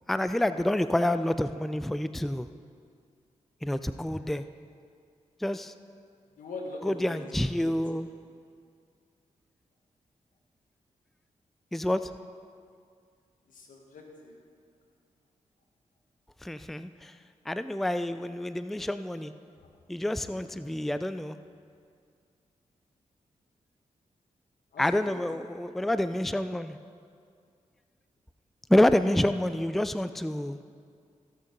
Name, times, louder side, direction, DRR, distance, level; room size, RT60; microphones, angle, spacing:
voice 1, 0.1-2.5 3.6-4.4 5.4-5.7 6.8-8.1 11.7-12.0 16.4-17.1 17.5-19.3 19.9-21.4 24.8-26.8 28.7-30.6, left 1 dB, ahead, 12 dB, 0.4 m, -28 dB
voice 2, 6.4-7.3 7.6-8.0 13.5-14.4 19.6-19.8 20.2-20.8 24.7-25.2, left 3 dB, 85° left, 1 dB, 1.7 m, -43 dB
16.0 x 6.6 x 5.3 m, 2.3 s
cardioid pair, 55°, 13 cm